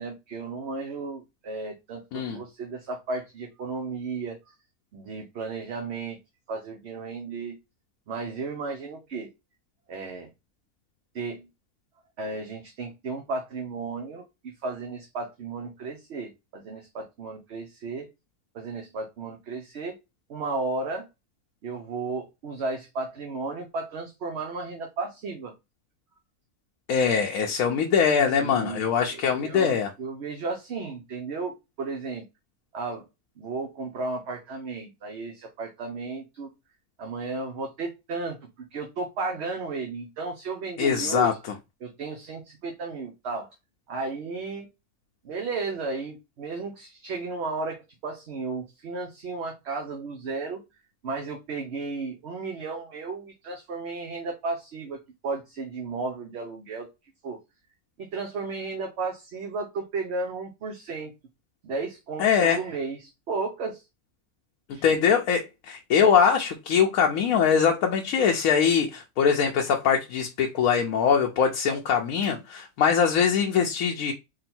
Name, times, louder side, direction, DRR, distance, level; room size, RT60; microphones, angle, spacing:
voice 1, 0.0-4.5 4.9-6.2 6.5-7.6 8.1-9.3 9.9-10.3 11.1-11.5 12.2-18.1 18.5-19.9 20.3-21.1 21.6-25.5 28.4-31.5 31.8-32.2 32.7-33.0 33.4-36.5 37.0-41.4 41.8-43.5 43.9-44.7 45.2-50.6 51.0-56.9 57.2-57.4 58.0-61.1 61.6-63.8 64.7-64.8 72.2-72.3, right 3 dB, 60° right, 0.9 m, -34 dB
voice 2, 26.9-29.9 40.8-41.3 62.2-62.6 64.8-74.1, left 7 dB, 80° left, 1.1 m, -22 dB
3.8 x 2.2 x 4.2 m
omnidirectional pair, 1.5 m